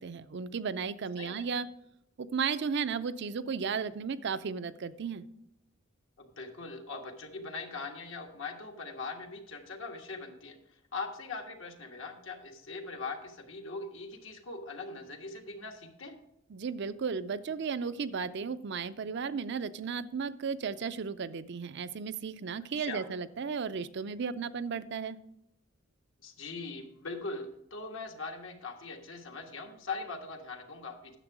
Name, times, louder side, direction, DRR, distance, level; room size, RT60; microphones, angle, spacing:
voice 1, 0.0-1.7 2.2-5.2 16.5-25.2, right 5 dB, 60° right, 13 dB, 0.5 m, -34 dB
voice 2, 6.2-10.6 10.9-16.1 22.7-23.1 26.2-31.2, left 3 dB, 75° left, 3 dB, 1.5 m, -41 dB
9.9 x 7.2 x 4.8 m, 0.80 s
head